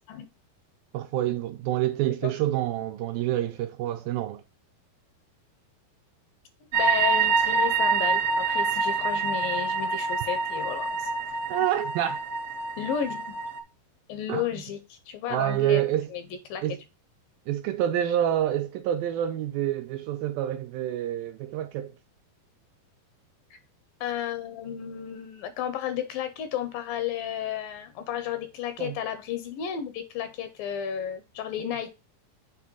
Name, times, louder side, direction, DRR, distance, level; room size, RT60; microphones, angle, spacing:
voice 1, 0.9-4.4 11.5-12.2 14.3-14.6 15.3-16.1 16.6-16.8 17.5-21.9 28.8-29.0 31.6-31.9, right 12 dB, 80° right, 2.1 m, -27 dB
voice 2, 6.7-11.1 12.8-13.3 14.1-15.8 16.1-16.2 16.5-16.6 24.0-31.9, left 9 dB, 80° left, 2.3 m, -33 dB
sound 1, 6.7-13.6, right 4 dB, 65° right, 1.7 m, -26 dB
7.4 x 3.3 x 6.0 m
omnidirectional pair, 4.5 m